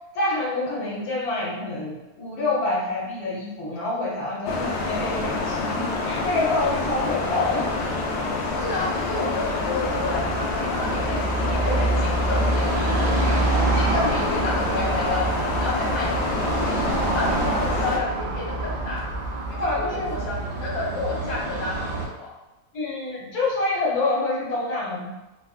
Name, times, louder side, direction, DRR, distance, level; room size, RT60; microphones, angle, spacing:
voice 1, 0.1-7.6 14.0-14.2 19.6-20.2 22.7-25.1, left 2 dB, 70° left, -5 dB, 1.4 m, -27 dB
sound 1, 4.5-18.0, left 3 dB, 90° left, 0.5 m, -27 dB
voice 2, 7.2-7.6 8.4-13.3 13.7-16.8 17.1-19.1 19.5-22.3, left 3 dB, 30° left, -7 dB, 0.7 m, -31 dB
Car passing by / Traffic noise roadway noise, 7.5-22.1, right 2 dB, 65° right, 0.5 m, -27 dB
4.2 x 2.4 x 2.4 m, 1.0 s
omnidirectional pair, 1.7 m